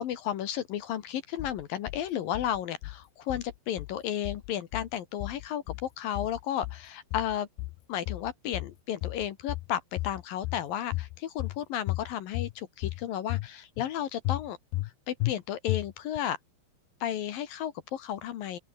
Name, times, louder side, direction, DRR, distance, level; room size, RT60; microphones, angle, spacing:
voice 1, 0.0-7.5 7.9-14.6 14.8-16.4 17.0-18.6, left 10 dB, 65° left, 2.6 m, -33 dB
sound 1, 1.4-2.0 2.3-3.0 3.3-4.0 4.3-4.9 5.2-5.9 6.2-6.9 7.1-7.8 8.1-8.8 9.0-9.7 10.0-10.6 10.9-11.6 11.9-12.5 12.8-13.5 13.8-13.9 14.3-14.9 15.2-15.3 15.7-16.2, left 19 dB, 85° left, 2.2 m, -34 dB
open air
omnidirectional pair, 5.3 m